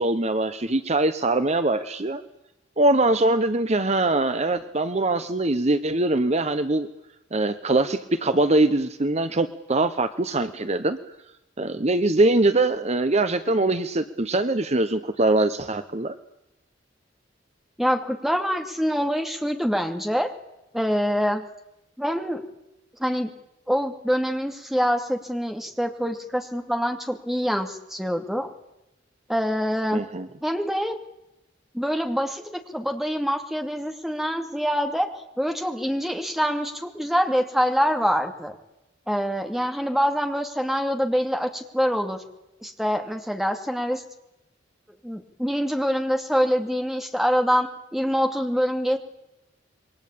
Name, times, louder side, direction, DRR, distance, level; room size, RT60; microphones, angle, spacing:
voice 1, 0.0-2.2 2.8-6.9 7.3-11.0 11.6-16.1 29.9-30.3, right 2 dB, 35° right, 10 dB, 1.1 m, -22 dB
voice 2, 17.8-20.3 20.7-21.4 22.0-22.4 23.0-23.3 23.7-28.5 29.3-30.0 30.4-31.0 31.7-35.1 35.4-38.5 39.1-42.2 42.6-44.0 45.0-49.0, equal, ahead, 5 dB, 2.6 m, -25 dB
27.5 x 23.0 x 8.7 m, 0.91 s
head